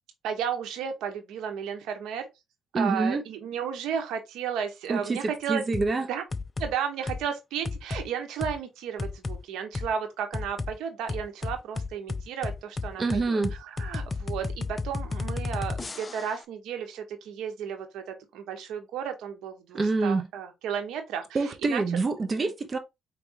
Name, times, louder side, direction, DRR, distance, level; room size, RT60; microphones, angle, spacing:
voice 1, 0.2-2.3 2.7-5.6 6.1-6.2 6.6-21.2 21.6-21.8 22.4-22.5, right 8 dB, 85° right, 1.1 m, -33 dB
voice 2, 2.7-3.2 4.9-6.1 13.0-13.5 19.7-20.3 21.3-22.8, right 3 dB, 35° right, 0.9 m, -26 dB
sound 1, 5.7-5.9 6.3-6.7 7.1-7.3 7.6-8.0 8.4-8.5 9.0-9.4 9.7-9.9 10.3-10.7 11.1-16.4, left 3 dB, 30° left, 0.4 m, -32 dB
4.8 x 3.4 x 2.9 m
cardioid pair, 90°, 0 cm